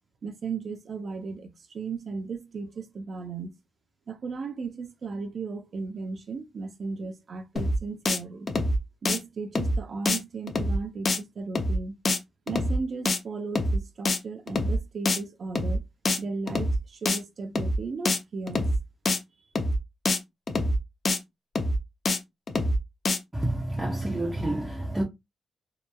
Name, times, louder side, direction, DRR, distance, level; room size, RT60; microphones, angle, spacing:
voice 1, 0.2-3.5 4.1-8.5 9.0-12.0 12.5-15.8 16.2-18.7, right 4 dB, 55° right, 0.5 m, -35 dB
sound 1, 7.6-7.8 8.1-8.2 8.5-8.8 9.0-9.2 9.6-9.8 10.1-10.2 10.5-10.8 11.1-11.2 11.6-11.8 12.0-12.2 12.5-12.8 13.1-13.2 13.6-13.8 14.1-14.2 14.5-14.8 15.1-15.2 15.6-15.8 16.0-16.2 16.5-16.8 17.1-17.2 17.6-17.8 18.0-18.2 18.5-18.8 19.1-19.2 19.6-19.8 20.1-20.2 20.5-20.8 21.0-21.2 21.6-21.8 22.1-22.2 22.5-22.8 23.0-23.2, left 1 dB, 40° left, 0.5 m, -25 dB
voice 2, 23.3-25.0, right 1 dB, 15° right, 0.6 m, -28 dB
2.8 x 2.3 x 2.2 m
cardioid pair, 105°, 0 cm